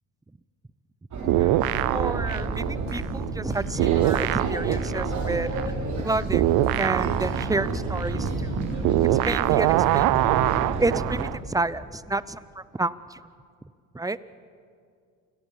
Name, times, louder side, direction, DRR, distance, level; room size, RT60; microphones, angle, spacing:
sound 1, 1.1-11.2, right 2 dB, 55° right, 4.6 m, -30 dB
voice 1, 1.2-1.6 1.9-5.5 6.0-8.5 9.1-10.3 10.8-13.2 13.9-14.2, right 2 dB, 10° right, 17 dB, 0.7 m, -30 dB
sound 2, 1.3-3.5 3.8-11.4, right 16 dB, 85° right, 0.6 m, -24 dB
sound 3, 2.5-12.2, left 2 dB, 50° left, 3.2 m, -44 dB
28.5 x 17.5 x 7.3 m, 2.3 s
cardioid pair, 90°, 34 cm